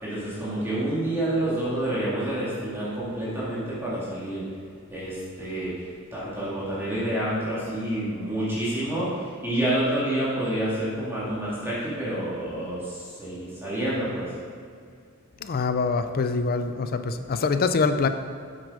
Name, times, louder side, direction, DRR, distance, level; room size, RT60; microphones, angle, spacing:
voice 1, 0.0-4.4 4.9-5.7 6.1-9.1 9.4-14.3, right 1 dB, 10° right, -9 dB, 2.2 m, -28 dB
voice 2, 15.4-18.1, left 4 dB, 45° left, 10 dB, 0.4 m, -24 dB
8.1 x 7.7 x 4.9 m, 2.2 s
head